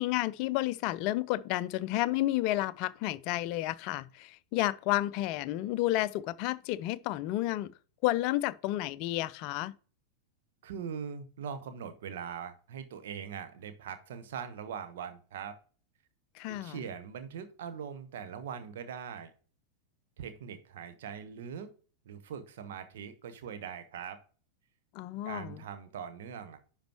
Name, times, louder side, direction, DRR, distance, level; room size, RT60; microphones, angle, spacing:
voice 1, 0.0-7.7 8.0-9.7 16.4-16.8 24.9-25.6, left 16 dB, 45° left, 0.4 m, -31 dB
voice 2, 10.6-15.5 16.5-19.3 20.2-21.7 22.0-24.2 25.2-26.6, right 7 dB, 55° right, 1.1 m, -41 dB
10.5 x 5.1 x 3.0 m
figure-of-eight pair, 90°, 0 cm